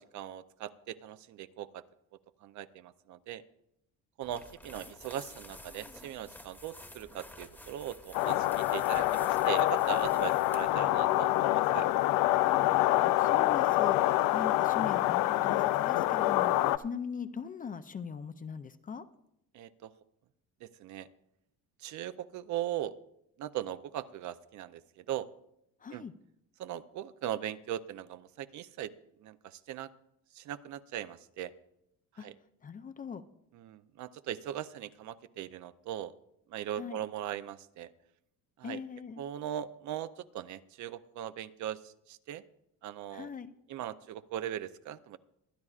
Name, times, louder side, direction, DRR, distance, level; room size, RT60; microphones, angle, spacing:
voice 1, 0.0-1.8 2.4-3.4 4.2-11.9 19.5-19.9 20.6-21.1 21.8-22.9 23.4-25.3 25.9-26.0 26.6-28.9 29.2-29.9 30.3-31.5 32.1-32.4 33.5-36.1 36.5-37.9 38.6-38.8 39.2-42.4 42.8-43.3 43.7-45.2, right 11 dB, 60° right, 13 dB, 0.6 m, -39 dB
sound 1, 4.2-10.8, left 1 dB, 5° left, 1.1 m, -51 dB
sound 2, 8.1-16.8, left 16 dB, 75° left, 0.5 m, -26 dB
voice 2, 13.0-16.5 16.8-19.0 25.8-26.1 32.2-32.3 32.6-33.2 36.8-37.0 38.6-39.2 43.1-43.5, left 6 dB, 25° left, 11 dB, 0.5 m, -40 dB
23.5 x 9.8 x 2.4 m, 0.78 s
cardioid pair, 115°, 33 cm